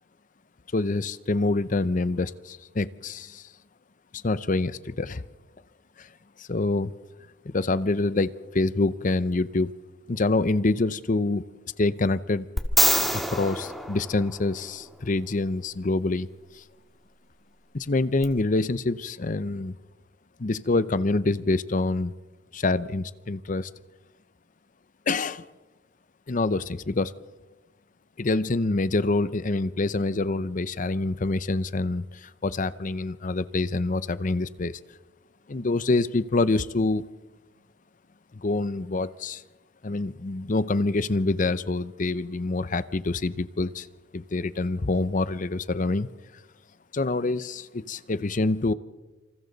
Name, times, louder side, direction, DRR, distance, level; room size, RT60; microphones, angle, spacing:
voice 1, 0.7-3.4 4.2-5.2 6.0-6.1 6.4-6.9 7.5-9.7 10.1-11.4 11.8-12.5 13.1-16.3 16.5-16.6 17.7-19.7 20.4-22.1 22.5-23.7 25.1-25.4 26.3-27.1 28.2-34.7 35.5-37.0 38.3-39.4 39.8-43.9 44.1-46.1 46.9-48.7, left 2 dB, 40° left, 16 dB, 0.6 m, -26 dB
sound 1, 12.6-14.8 18.2-18.3, equal, ahead, 2.0 m, -25 dB
28.0 x 27.0 x 4.0 m, 1.2 s
head